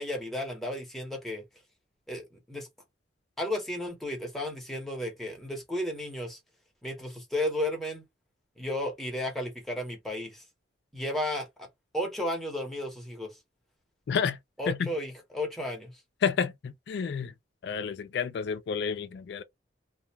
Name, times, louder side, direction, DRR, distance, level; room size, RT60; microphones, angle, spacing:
voice 1, 0.0-1.4 2.1-2.7 3.4-6.4 6.8-8.0 8.6-10.4 10.9-11.7 11.9-13.4 14.6-15.9, left 1 dB, ahead, 0.8 m, -33 dB
voice 2, 14.1-14.4 14.7-14.9 16.2-17.3 17.6-19.4, left 6 dB, 60° left, 0.3 m, -30 dB
2.3 x 2.2 x 2.8 m
head